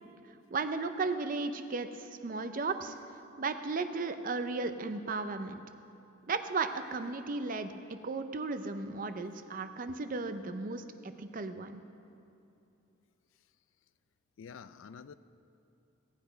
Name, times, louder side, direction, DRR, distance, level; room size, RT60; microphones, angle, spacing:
voice 1, 0.5-3.0 3.4-5.6 6.3-11.8, right 3 dB, 40° right, 9 dB, 0.5 m, -35 dB
voice 2, 14.4-15.1, left 6 dB, 65° left, 14 dB, 0.4 m, -48 dB
16.5 x 8.8 x 5.1 m, 2.7 s
head